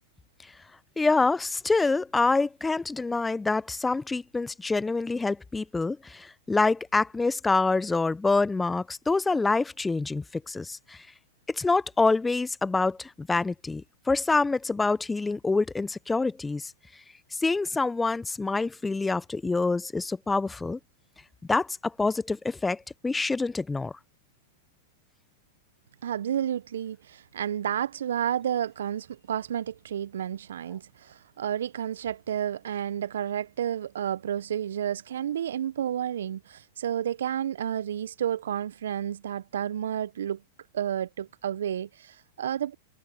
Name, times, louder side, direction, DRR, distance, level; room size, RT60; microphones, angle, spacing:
voice 1, 1.0-11.0 11.5-16.7 17.4-20.8 21.5-23.9, left 3 dB, 10° left, 0.7 m, -26 dB
voice 2, 26.0-40.4 40.7-42.7, right 10 dB, 70° right, 0.7 m, -31 dB
figure-of-eight pair, 100°, 0 cm